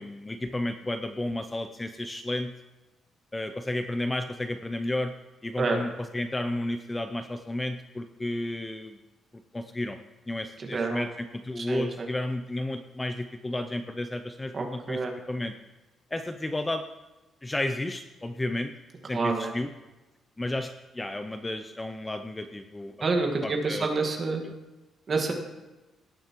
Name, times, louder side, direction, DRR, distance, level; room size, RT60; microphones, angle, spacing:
voice 1, 0.0-2.5 3.3-5.1 5.4-9.0 9.5-10.0 10.3-15.0 15.3-15.5 16.1-16.8 17.4-18.7 19.1-19.7 20.4-22.9 23.4-23.9 24.5-24.6, left 1 dB, 10° left, 8 dB, 0.4 m, -32 dB
voice 2, 10.7-11.0 11.6-12.1 14.5-15.1 19.1-19.5 23.0-24.4 25.1-25.3, right 3 dB, 30° right, 2 dB, 1.5 m, -28 dB
18.0 x 9.0 x 3.0 m, 1.1 s
cardioid pair, 180°, 0 cm